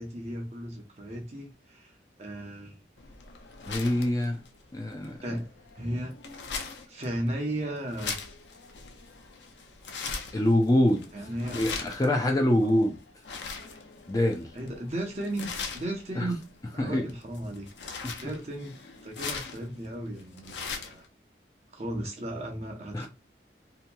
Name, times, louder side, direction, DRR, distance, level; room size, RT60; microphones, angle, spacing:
voice 1, 0.0-2.8 5.2-5.5 5.7-6.1 6.9-8.2 11.1-11.6 12.6-12.8 14.5-16.4 16.7-17.7 18.2-18.7 19.0-21.1 21.7-23.1, right 1 dB, 40° right, 0.7 m, -35 dB
sound 1, 3.0-21.1, left 5 dB, 80° left, 0.5 m, -41 dB
voice 2, 3.7-4.4 4.7-5.4 10.3-11.0 11.5-13.0 14.1-14.5 16.2-16.3 16.8-17.1 18.0-18.1 22.9-23.1, left 1 dB, 20° left, 0.4 m, -25 dB
2.8 x 2.7 x 2.2 m
head